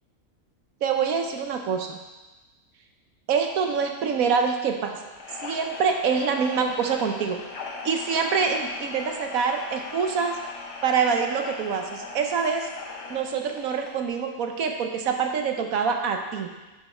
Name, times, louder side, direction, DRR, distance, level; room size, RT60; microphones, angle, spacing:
voice 1, 0.8-2.0 3.3-5.0 5.4-7.4 7.8-10.4 10.8-12.7 13.1-16.5, right 6 dB, 80° right, 4 dB, 1.2 m, -25 dB
sound 1, 5.1-14.1, left 3 dB, 60° left, 1.3 m, -39 dB
10.0 x 5.0 x 4.3 m, 1.1 s
omnidirectional pair, 1.5 m